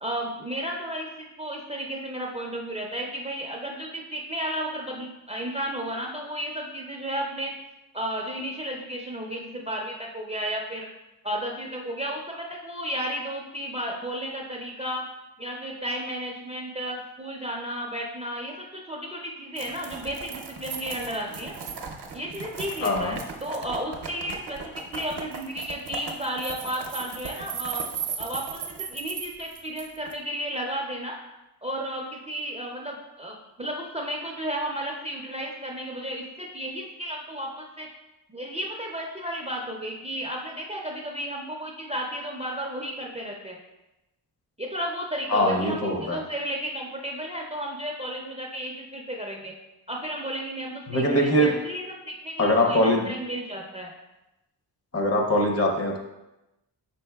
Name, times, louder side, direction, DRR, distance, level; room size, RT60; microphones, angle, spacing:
voice 1, 0.0-7.5 7.9-10.9 11.2-15.0 15.4-21.5 22.1-27.8 28.2-31.2 31.6-37.9 38.3-43.6 44.6-49.5 49.9-53.9, equal, 15° right, -1 dB, 0.4 m, -33 dB
sound 1, 19.6-30.1, right 6 dB, 70° right, 0.6 m, -37 dB
voice 2, 22.8-23.2 45.3-46.2 50.9-51.5 52.4-53.1 54.9-56.0, left 1 dB, 35° left, 2 dB, 0.6 m, -22 dB
5.4 x 4.2 x 2.2 m, 0.96 s
wide cardioid pair, 130°, 42 cm